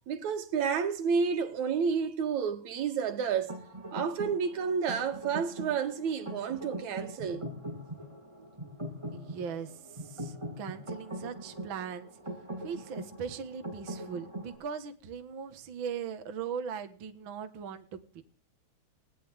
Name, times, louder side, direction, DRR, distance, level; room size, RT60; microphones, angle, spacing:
voice 1, 0.1-3.6 3.9-7.5, right 6 dB, 75° right, 3.1 m, -30 dB
sound 1, 3.5-14.6, right 1 dB, 10° right, 6.7 m, -42 dB
voice 2, 9.1-12.1 12.6-18.2, right 7 dB, 45° right, 2.1 m, -39 dB
20.0 x 17.5 x 3.7 m
omnidirectional pair, 3.3 m